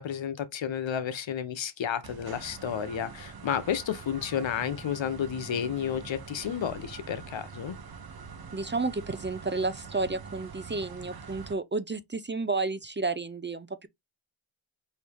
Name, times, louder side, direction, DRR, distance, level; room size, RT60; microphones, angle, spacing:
voice 1, 0.0-7.8, left 8 dB, 70° left, 0.9 m, -31 dB
sound 1, 2.0-11.5, right 5 dB, 50° right, 0.9 m, -44 dB
voice 2, 8.5-13.9, right 3 dB, 25° right, 0.6 m, -31 dB
4.4 x 2.9 x 3.4 m
cardioid pair, 45°, 47 cm